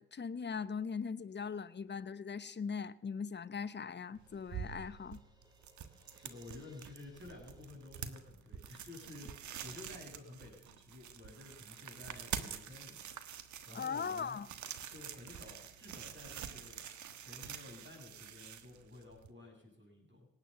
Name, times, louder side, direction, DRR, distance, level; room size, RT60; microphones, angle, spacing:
voice 1, 0.0-5.2 13.7-14.5, left 6 dB, 35° left, 0.9 m, -40 dB
Crash cymbal, 3.2-8.7, right 1 dB, 15° right, 3.4 m, -70 dB
sound 1, 4.1-19.3, right 9 dB, 75° right, 1.3 m, -47 dB
voice 2, 6.1-13.1 13.7-14.4 14.9-16.9 17.2-20.3, left 2 dB, 40° right, 7.2 m, -53 dB
18.5 x 9.1 x 7.0 m
supercardioid pair, 50°, 29 cm